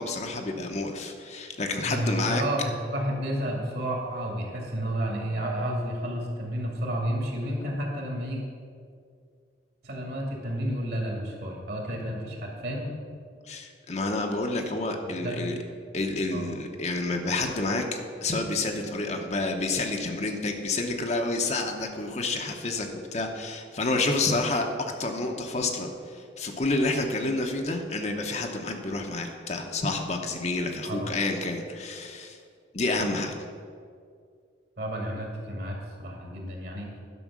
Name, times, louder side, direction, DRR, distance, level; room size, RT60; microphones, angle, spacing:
voice 1, 0.0-2.4 13.5-15.5 15.9-22.9 23.1-24.7 25.0-32.4 32.7-33.3, left 2 dB, 35° left, 3 dB, 0.9 m, -29 dB
voice 2, 1.8-8.4 9.8-12.9 15.0-15.4 16.3-16.5 30.9-31.1 34.8-36.9, equal, 55° right, 0 dB, 2.3 m, -31 dB
11.0 x 6.3 x 6.2 m, 2.2 s
head